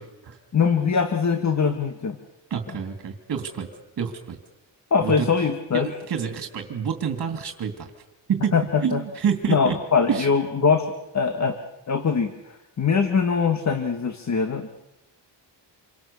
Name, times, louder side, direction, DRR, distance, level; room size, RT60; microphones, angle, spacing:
voice 1, 0.0-0.4 2.5-3.7 4.0-4.4 5.0-5.3 5.7-7.9 8.3-8.5 8.8-9.8 10.1-10.3, right 7 dB, 50° right, 6 dB, 2.9 m, -28 dB
voice 2, 0.5-2.2 4.9-5.9 8.5-9.0 9.5-11.6 11.9-12.3 12.8-14.7, left 5 dB, 40° left, 7 dB, 1.8 m, -22 dB
28.0 x 24.0 x 7.1 m, 0.91 s
wide cardioid pair, 140°, 44 cm